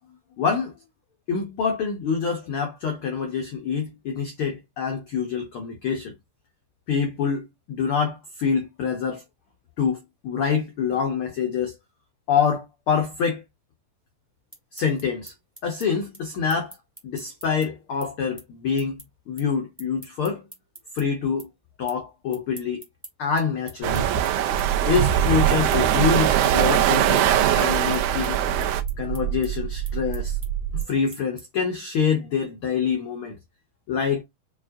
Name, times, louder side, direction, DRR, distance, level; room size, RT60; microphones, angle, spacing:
voice 1, 0.4-0.7 1.3-6.1 6.9-9.2 9.8-11.7 12.3-13.4 14.7-15.3 15.6-16.7 17.0-19.0 19.3-20.4 20.9-21.5 21.8-22.8 23.2-24.1 24.8-28.4 29.0-30.4 30.7-33.4 33.9-34.2, left 6 dB, 90° left, 1.2 m, -26 dB
sound 1, 14.3-21.0 21.4-22.0 22.3-31.7, right 1 dB, 10° right, 0.6 m, -46 dB
sound 2, 23.8-28.8, right 10 dB, 80° right, 2.1 m, -21 dB
sound 3, 24.5-30.8, right 9 dB, 65° right, 2.0 m, -29 dB
7.1 x 2.4 x 2.5 m
omnidirectional pair, 3.6 m